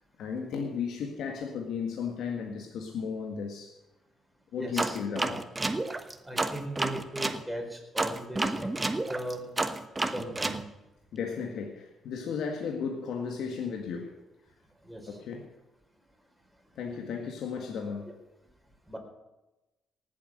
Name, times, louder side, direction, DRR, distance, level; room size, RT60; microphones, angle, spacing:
voice 1, 0.2-3.7 4.5-5.4 11.1-14.1 15.1-15.5 16.7-18.1, left 6 dB, 75° left, 2 dB, 1.9 m, -34 dB
voice 2, 4.6-5.4 6.2-8.7 9.1-9.4 10.0-10.6 14.8-15.2 18.9-19.0, right 1 dB, ahead, 0 dB, 4.9 m, -38 dB
sound 1, 4.8-7.4 8.0-10.6, right 2 dB, 20° right, 1.2 m, -30 dB
18.5 x 8.4 x 6.7 m, 1.0 s
cardioid pair, 90°, 0 cm